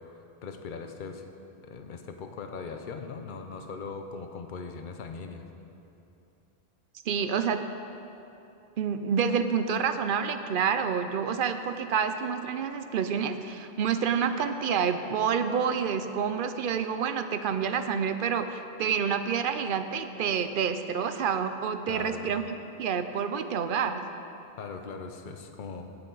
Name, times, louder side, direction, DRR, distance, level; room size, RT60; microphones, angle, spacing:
voice 1, 0.4-1.2 1.6-5.5 21.9-22.3 24.6-25.9, left 5 dB, 55° left, 5 dB, 0.8 m, -39 dB
voice 2, 7.1-7.6 8.8-24.0, right 7 dB, 60° right, 9 dB, 0.7 m, -28 dB
16.5 x 6.9 x 3.9 m, 2.9 s
omnidirectional pair, 1.0 m